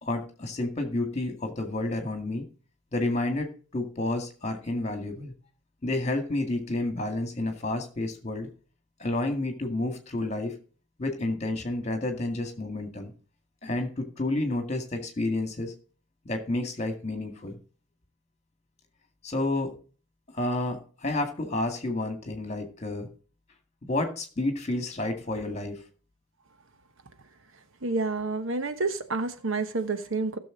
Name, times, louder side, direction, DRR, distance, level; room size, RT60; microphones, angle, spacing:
voice 1, 0.0-2.4 2.9-5.3 5.8-8.5 9.0-10.5 11.0-13.1 13.6-15.7 16.3-17.6 19.2-19.7 20.3-23.1 23.8-25.8, left 2 dB, 30° left, 5 dB, 2.0 m, -30 dB
voice 2, 27.8-30.4, right 3 dB, 60° right, 10 dB, 1.0 m, -29 dB
15.5 x 6.9 x 3.9 m, 0.38 s
head